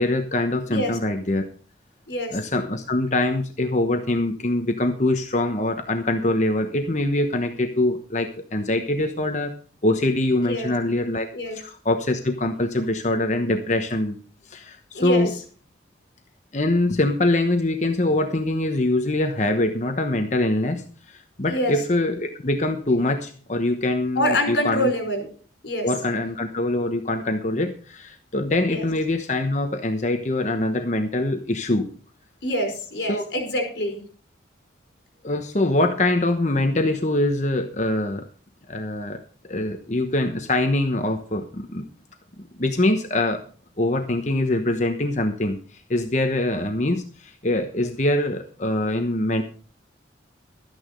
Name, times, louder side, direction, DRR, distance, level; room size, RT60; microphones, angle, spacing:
voice 1, 0.0-1.4 2.3-9.5 9.8-11.3 11.5-14.2 14.5-15.3 16.5-24.9 25.8-31.9 33.1-33.2 35.2-38.3 38.7-41.8 42.6-43.4 43.8-49.4, left 1 dB, 40° left, 5 dB, 1.1 m, -23 dB
voice 2, 2.1-2.4 10.4-10.7 11.3-11.6 14.9-15.3 21.4-21.7 24.1-25.3 25.6-25.9 28.7-28.9 32.4-34.0, equal, 60° left, 4 dB, 4.8 m, -25 dB
13.0 x 9.6 x 5.3 m, 0.41 s
head